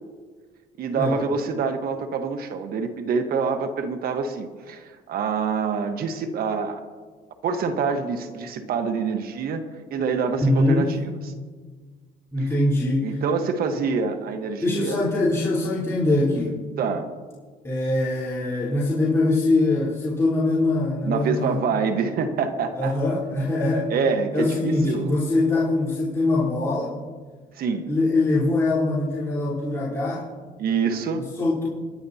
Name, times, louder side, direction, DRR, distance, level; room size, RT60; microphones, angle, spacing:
voice 1, 0.8-6.8 7.4-9.6 9.9-10.9 13.0-15.0 16.8-17.1 21.0-22.9 23.9-25.1 27.6-27.9 30.6-31.3, right 5 dB, 65° right, 7 dB, 1.4 m, -26 dB
voice 2, 10.3-10.9 12.3-13.2 14.6-16.6 17.6-21.6 22.7-23.9 24.3-27.0 27.9-30.2 31.2-31.7, left 2 dB, 15° left, -9 dB, 4.0 m, -23 dB
30.0 x 10.5 x 2.8 m, 1.5 s
cardioid pair, 110°, 17 cm